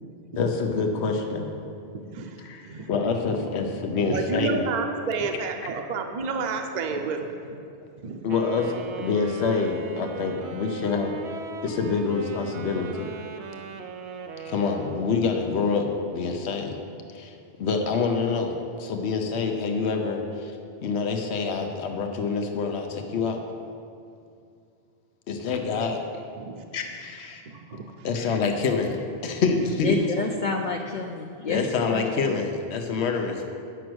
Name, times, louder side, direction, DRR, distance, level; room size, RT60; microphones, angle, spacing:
voice 1, 0.4-1.5 2.4-2.6 2.9-4.6 8.2-11.1 11.6-13.1 14.4-16.8 17.1-17.3 17.6-20.5 20.8-23.4 25.3-26.0 26.7-27.4 28.0-30.0 31.5-33.5, left 4 dB, 80° left, 1.0 m, -26 dB
voice 2, 2.1-2.9 3.3-7.6 8.0-8.2 26.4-26.7 27.5-27.9 29.5-29.6, right 5 dB, 45° right, 0.7 m, -31 dB
Wind instrument woodwind instrument, 8.3-15.2, right 5 dB, 90° right, 0.9 m, -38 dB
voice 3, 29.8-31.6 31.9-32.0 32.3-32.4, left 4 dB, 55° left, 0.6 m, -29 dB
9.1 x 6.2 x 6.1 m
omnidirectional pair, 1.1 m